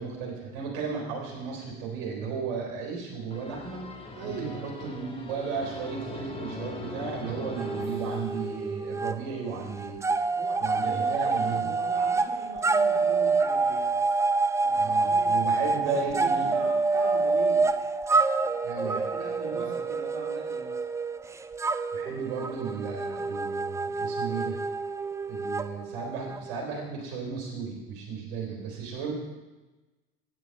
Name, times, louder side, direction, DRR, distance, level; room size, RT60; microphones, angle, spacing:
voice 1, 0.0-3.9 4.2-10.1 10.6-11.7 14.8-16.5 18.6-19.0 19.5-19.6 21.9-24.6 25.3-29.1, right 5 dB, 65° right, 0 dB, 3.8 m, -34 dB
sound 1, 3.3-8.9, left 2 dB, 15° left, 1.6 m, -41 dB
voice 2, 4.1-4.7 10.3-14.1 14.6-15.3 15.8-17.8 18.1-20.8, right 4 dB, 50° right, -5 dB, 2.3 m, -41 dB
sound 2, 7.6-9.2 9.5-26.6, right 3 dB, 10° right, 0.3 m, -27 dB
9.9 x 7.9 x 5.4 m, 1.2 s
hypercardioid pair, 70°, 32 cm